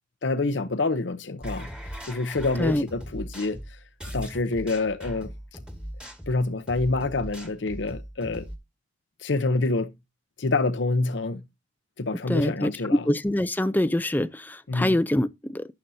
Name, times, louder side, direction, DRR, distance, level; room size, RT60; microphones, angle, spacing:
voice 1, 0.2-1.7 2.0-3.6 4.1-5.3 6.3-8.4 9.2-9.9 10.4-11.4 12.0-13.0 14.7-14.9, left 3 dB, 85° left, 0.7 m, -27 dB
sound 1, 1.4-8.6, equal, 5° right, 1.7 m, -39 dB
voice 2, 12.3-15.7, left 1 dB, 10° left, 0.5 m, -25 dB
12.0 x 8.9 x 2.7 m
head